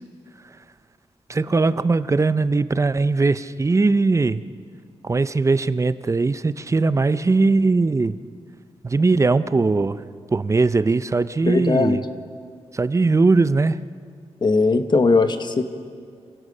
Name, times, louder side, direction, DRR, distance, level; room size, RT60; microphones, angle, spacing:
voice 1, 1.3-4.4 5.0-8.2 8.8-10.0 10.3-12.0 12.7-13.8, right 3 dB, 25° right, 14 dB, 0.6 m, -20 dB
voice 2, 11.5-12.0 14.4-15.6, left 3 dB, 40° left, 9 dB, 1.3 m, -19 dB
27.0 x 16.5 x 6.6 m, 2.2 s
wide cardioid pair, 100°, 11 cm